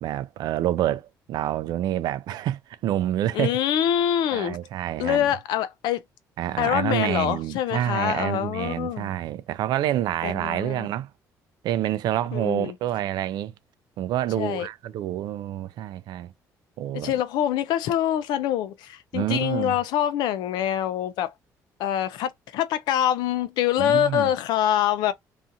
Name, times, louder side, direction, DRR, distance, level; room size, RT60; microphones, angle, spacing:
voice 1, 0.0-3.6 4.3-5.3 6.4-11.1 11.6-13.5 14.0-16.3 16.8-17.1 19.1-19.8 23.8-24.3, right 12 dB, 70° right, 0.4 m, -27 dB
voice 2, 3.3-4.6 5.0-6.0 6.6-9.2 10.2-10.9 12.3-12.7 14.4-14.7 16.9-21.3 21.8-25.1, left 11 dB, 80° left, 0.4 m, -25 dB
2.7 x 2.4 x 2.5 m
cardioid pair, 90°, 7 cm